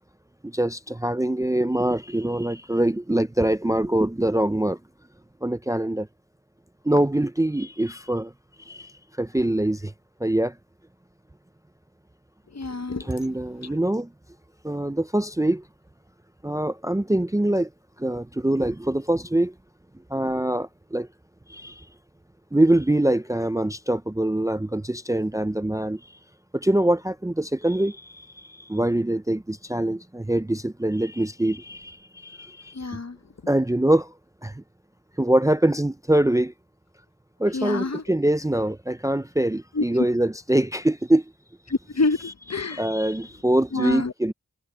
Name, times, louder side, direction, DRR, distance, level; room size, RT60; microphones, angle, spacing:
voice 1, 0.4-4.8 5.4-6.1 6.8-8.3 8.7-8.9 9.2-9.9 10.2-10.6 13.0-14.1 14.6-15.6 16.4-17.7 18.0-19.5 20.1-21.1 21.5-21.8 22.5-26.0 26.5-32.8 33.5-34.1 34.4-34.6 35.2-36.5 37.4-41.3 42.7-44.3, right 1 dB, 10° right, 0.5 m, -24 dB
voice 2, 12.5-13.1 32.7-33.2 37.5-38.0 39.7-39.8 41.7-42.8 43.7-44.1, left 3 dB, 55° left, 1.2 m, -27 dB
wide cardioid pair, 55°, 33 cm